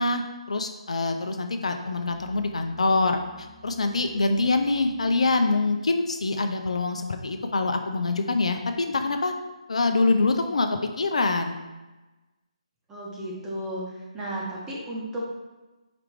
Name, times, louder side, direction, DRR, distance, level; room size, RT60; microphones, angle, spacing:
voice 1, 0.0-9.3 9.7-10.7 11.0-11.6, left 3 dB, 65° left, 6 dB, 0.4 m, -25 dB
Musical instrument, 1.8-5.3, left 2 dB, 40° right, 0.9 m, -51 dB
voice 2, 12.9-15.2, right 1 dB, 10° right, -5 dB, 1.0 m, -34 dB
4.8 x 3.4 x 3.3 m, 1.1 s
figure-of-eight pair, 145°, 4 cm